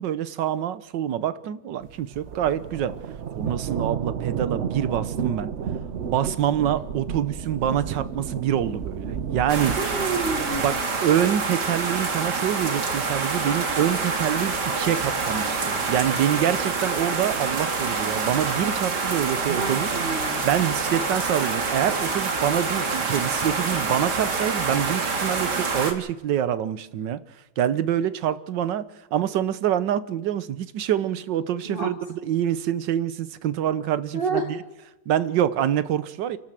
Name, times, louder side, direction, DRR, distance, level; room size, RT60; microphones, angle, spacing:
voice 1, 0.0-2.9 3.4-5.5 6.1-9.8 10.6-19.9 20.4-27.2 27.6-28.8 29.1-34.6 35.1-36.4, right 10 dB, 85° right, 15 dB, 1.6 m, -26 dB
sound 1, 1.8-10.8, right 7 dB, 50° right, 0.9 m, -32 dB
sound 2, 9.5-25.9, right 4 dB, 70° right, 2.6 m, -26 dB
voice 2, 9.8-10.8 19.5-20.5 31.7-31.9 34.1-34.5, right 4 dB, 30° right, 2 dB, 1.9 m, -29 dB
28.5 x 12.5 x 7.6 m, 1.0 s
omnidirectional pair, 1.9 m